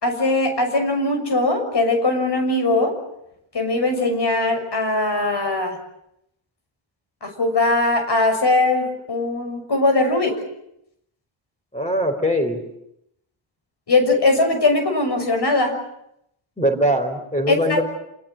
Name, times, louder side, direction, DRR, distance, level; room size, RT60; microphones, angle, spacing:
voice 1, 0.0-2.9 3.5-5.8 7.2-10.3 13.9-15.7 17.5-17.8, left 2 dB, 55° left, 6 dB, 6.6 m, -20 dB
voice 2, 11.7-12.6 16.6-17.8, equal, 15° left, 4 dB, 4.3 m, -21 dB
28.5 x 19.5 x 8.9 m, 0.79 s
cardioid pair, 70°, 50 cm